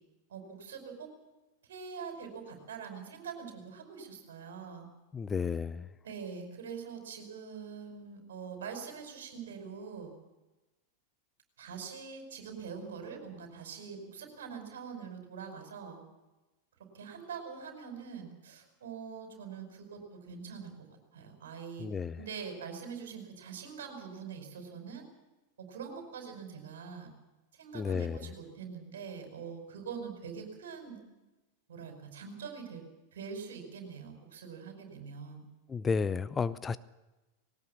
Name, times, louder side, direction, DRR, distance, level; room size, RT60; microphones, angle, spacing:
voice 1, 0.3-1.1 1.7-4.9 6.0-10.1 11.6-16.0 16.9-21.9 22.2-25.0 25.6-27.1 27.5-31.0 31.7-32.8 33.1-35.4, right 6 dB, 60° right, 5 dB, 5.1 m, -44 dB
voice 2, 5.1-5.9 21.8-22.2 27.7-28.2 35.7-36.8, left 5 dB, 15° left, 16 dB, 0.6 m, -32 dB
20.5 x 18.5 x 7.2 m, 1.1 s
figure-of-eight pair, 90°, 0 cm